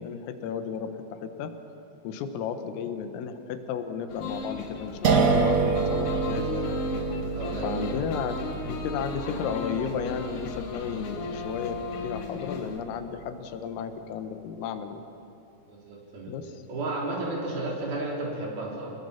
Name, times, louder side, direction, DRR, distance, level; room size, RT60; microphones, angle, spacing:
voice 1, 0.0-1.5 2.0-6.7 7.6-15.0 16.3-16.6, left 7 dB, 85° left, 8 dB, 3.9 m, -34 dB
sound 1, 4.1-12.8, left 4 dB, 60° left, 3.5 m, -35 dB
sound 2, 5.0-12.0, right 5 dB, 80° right, 1.4 m, -28 dB
voice 2, 7.3-7.9 15.7-16.3 16.7-18.9, right 2 dB, 50° right, -2 dB, 5.4 m, -33 dB
26.5 x 21.0 x 7.2 m, 2.7 s
omnidirectional pair, 5.9 m